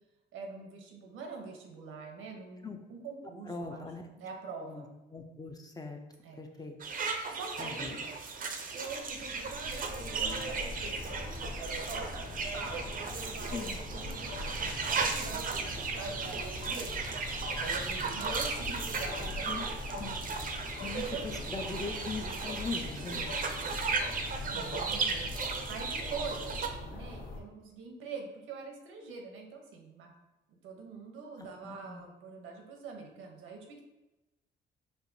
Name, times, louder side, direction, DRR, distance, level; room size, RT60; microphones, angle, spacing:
voice 1, 0.3-3.8 4.2-4.9 6.2-6.4 7.3-8.1 8.7-16.9 17.6-19.7 20.9-21.4 23.1-23.8 24.4-30.1 30.5-33.8, right 4 dB, 90° right, 2 dB, 0.7 m, -44 dB
voice 2, 3.5-4.0 4.6-4.8 5.1-6.0 6.4-6.8 7.6-8.0 13.5-13.8 19.4-19.7 19.9-20.1 20.8-23.3 24.5-24.8 31.6-32.0, left 4 dB, 20° left, 3 dB, 0.5 m, -40 dB
sound 1, 6.8-26.7, right 4 dB, 45° right, 0.5 m, -36 dB
sound 2, 8.9-27.4, left 2 dB, 45° left, 0.9 m, -42 dB
4.5 x 2.5 x 2.6 m, 1.0 s
cardioid pair, 90°, 20 cm